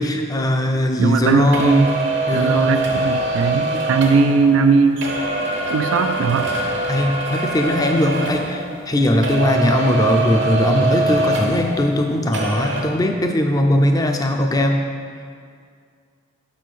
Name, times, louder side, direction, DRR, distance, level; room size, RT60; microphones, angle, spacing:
voice 1, 0.0-1.8 2.3-2.8 3.5-3.8 6.9-14.8, left 1 dB, 20° left, 4 dB, 0.4 m, -19 dB
voice 2, 1.0-1.9 2.3-5.2 5.7-6.5, right 5 dB, 80° right, 8 dB, 0.3 m, -18 dB
sound 1, 1.5-9.0 9.2-12.1 12.3-12.8, right 2 dB, 60° right, 0.8 m, -23 dB
6.1 x 4.2 x 6.3 m, 2.2 s
head